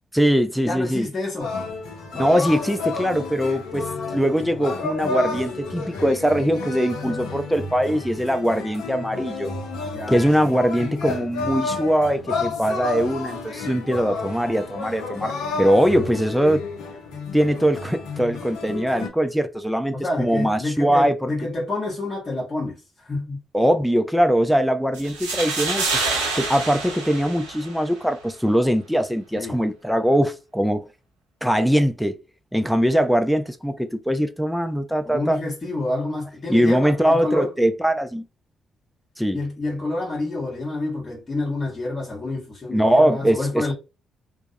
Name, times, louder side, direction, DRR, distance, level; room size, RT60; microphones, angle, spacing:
voice 1, 0.1-1.1 2.1-3.9 4.1-9.5 10.1-16.6 17.3-21.3 23.5-26.1 26.4-30.8 31.4-32.2 32.5-35.4 36.5-38.2 39.2-39.4 42.7-43.7, equal, ahead, 0.4 m, -21 dB
voice 2, 0.6-1.5 7.2-7.4 9.9-10.2 19.9-23.4 29.3-29.6 35.0-37.5 39.3-43.7, left 2 dB, 40° left, 1.0 m, -28 dB
sound 1, 1.4-19.1, left 3 dB, 75° left, 0.6 m, -31 dB
sound 2, 24.9-28.0, right 3 dB, 85° right, 0.6 m, -27 dB
2.2 x 2.0 x 2.6 m
hypercardioid pair, 40°, 0 cm